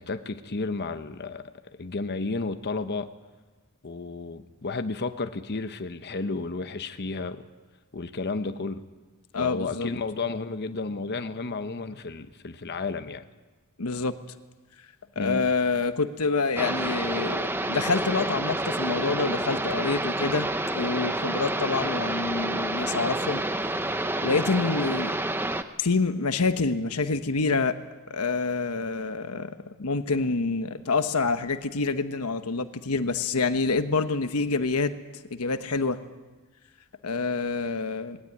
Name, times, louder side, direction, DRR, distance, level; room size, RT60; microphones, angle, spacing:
voice 1, 0.0-1.5 1.8-3.1 3.8-7.4 7.9-8.8 9.4-13.2 15.2-15.4, left 3 dB, 50° left, 9 dB, 0.9 m, -32 dB
voice 2, 9.3-9.9 13.8-14.2 15.2-20.5 20.7-23.4 24.2-25.1 25.8-27.8 28.1-34.9 35.3-36.0 37.0-38.2, left 4 dB, 85° left, 9 dB, 1.1 m, -27 dB
sound 1, 16.6-25.6, right 1 dB, 10° right, 0.8 m, -29 dB
20.0 x 17.0 x 9.8 m, 1.3 s
head